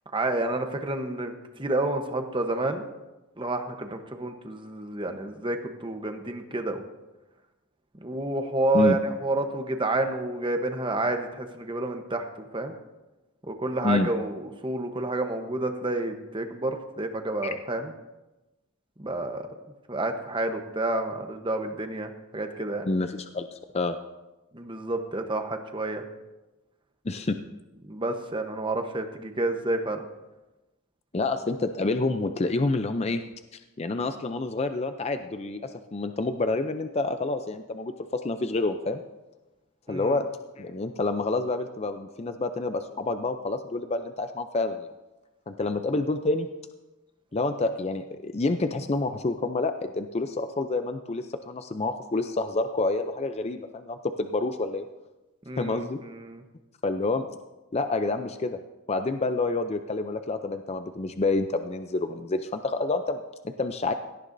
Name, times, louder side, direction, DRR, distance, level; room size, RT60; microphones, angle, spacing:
voice 1, 0.1-2.8 3.4-6.8 8.0-12.7 13.5-17.9 19.0-19.5 19.9-22.9 24.5-26.0 27.8-30.0 39.9-40.2 55.4-56.4, right 2 dB, 20° right, 5 dB, 0.9 m, -29 dB
voice 2, 22.9-24.0 27.0-27.4 31.1-33.2 33.5-39.0 39.9-40.3 40.6-44.9 45.5-46.5 47.3-54.8 55.6-56.0 56.8-57.2 57.7-58.6 58.9-63.9, left 3 dB, 30° left, 8 dB, 0.4 m, -28 dB
17.5 x 13.0 x 2.7 m, 1.1 s
head